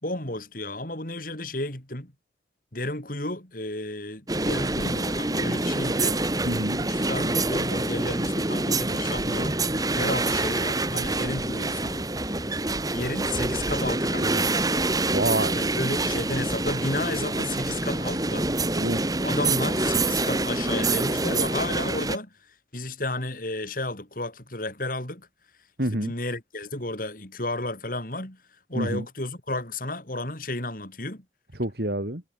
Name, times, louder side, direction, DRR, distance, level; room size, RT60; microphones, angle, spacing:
voice 1, 0.0-2.1 2.7-6.2 6.8-12.1 12.9-14.5 15.5-18.5 19.2-22.3 22.7-25.3 25.8-28.4 28.7-31.2, left 2 dB, 50° left, 4.5 m, -32 dB
sound 1, 4.3-22.2, right 2 dB, 20° right, 2.5 m, -26 dB
voice 2, 6.5-6.8 15.1-15.6 18.7-19.2 25.8-26.1 28.7-29.1 31.6-32.2, right 1 dB, 60° right, 3.6 m, -27 dB
head